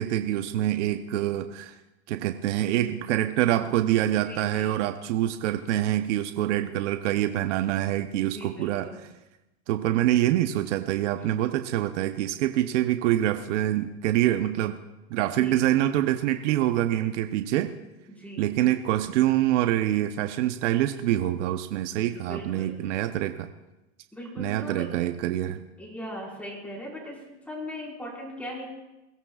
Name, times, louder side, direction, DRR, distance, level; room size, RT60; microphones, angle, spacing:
voice 1, 0.0-1.8 2.1-8.9 9.7-14.7 15.1-17.7 18.4-23.5 24.4-25.6, right 13 dB, 75° right, 8 dB, 0.9 m, -25 dB
voice 2, 2.4-2.9 4.2-4.8 8.2-9.0 15.2-15.6 18.1-18.5 22.1-23.0 24.1-24.9 25.8-27.2 27.5-28.6, equal, 5° left, -3 dB, 4.8 m, -39 dB
22.0 x 16.0 x 2.4 m, 0.98 s
supercardioid pair, 140°, 36 cm